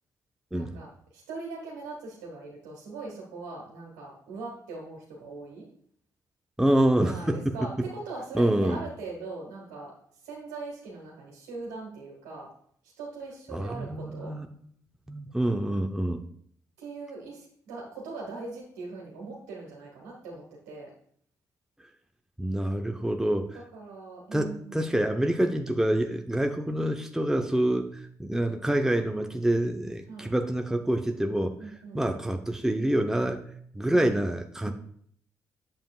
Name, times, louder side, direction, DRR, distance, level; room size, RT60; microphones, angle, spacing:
voice 1, 0.5-5.7 7.0-12.5 12.8-14.3 16.8-20.9 23.7-24.9 30.1-30.3 31.6-32.0 33.9-34.1 34.6-34.7, right 3 dB, 90° right, -4 dB, 1.5 m, -41 dB
voice 2, 6.6-7.4 8.3-8.8 13.5-14.5 15.1-16.2 22.4-23.6 24.3-31.6 31.9-34.7, right 1 dB, 5° right, 4 dB, 0.9 m, -26 dB
8.9 x 7.5 x 2.4 m, 0.63 s
hypercardioid pair, 45°, 8 cm